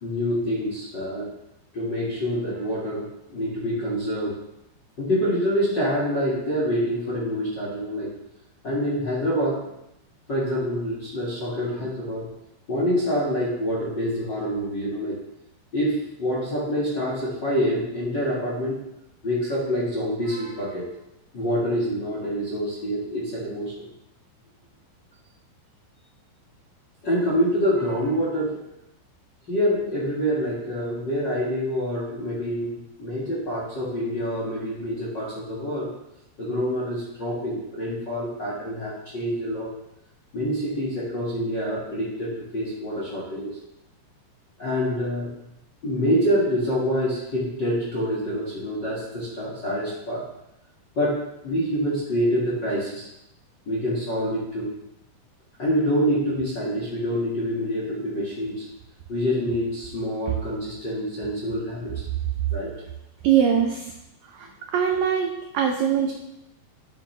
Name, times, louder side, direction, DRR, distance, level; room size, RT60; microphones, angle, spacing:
voice 1, 0.0-1.3 1.7-4.4 5.0-8.1 8.6-9.6 10.3-12.3 12.7-15.2 15.7-18.8 19.2-20.9 21.3-23.7 27.0-28.6 29.5-35.9 36.4-39.7 40.3-43.6 44.6-45.3 45.8-50.3 50.9-53.1 53.6-54.7 55.6-58.7 59.1-62.0 62.5-62.7, equal, 45° left, -5 dB, 1.5 m, -26 dB
voice 2, 63.2-63.9 64.2-66.1, right 8 dB, 90° right, 3 dB, 1.9 m, -22 dB
12.0 x 7.4 x 3.3 m, 0.84 s
omnidirectional pair, 5.0 m